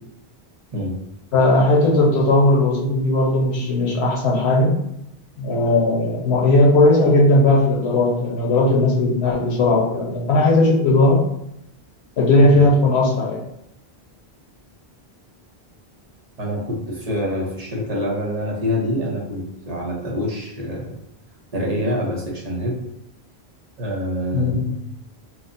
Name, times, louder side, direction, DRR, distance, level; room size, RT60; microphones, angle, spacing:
voice 1, 1.3-4.7 5.4-11.2 12.2-13.4 24.3-24.6, left 2 dB, 90° left, -2 dB, 1.1 m, -17 dB
voice 2, 16.4-20.9 21.5-22.8 23.8-24.7, equal, 40° right, -3 dB, 0.9 m, -26 dB
4.4 x 2.1 x 2.6 m, 0.79 s
omnidirectional pair, 1.1 m